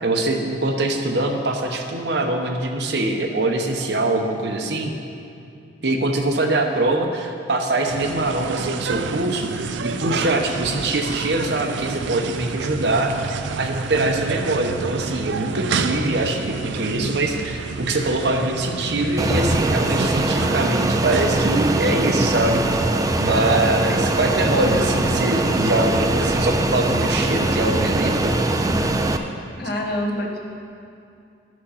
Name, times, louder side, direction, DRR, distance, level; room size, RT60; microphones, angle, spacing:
voice 1, 0.0-4.9 5.8-13.1 13.6-22.6 23.2-28.3, right 2 dB, 65° right, 3 dB, 0.9 m, -23 dB
sound 1, 7.9-26.4, right 4 dB, 85° right, 0.4 m, -30 dB
Fixed-wing aircraft airplane, 19.2-29.2, right 2 dB, 20° right, 0.4 m, -21 dB
voice 2, 29.6-30.4, left 1 dB, 60° left, -1 dB, 1.3 m, -26 dB
11.5 x 6.3 x 5.7 m, 2.6 s
head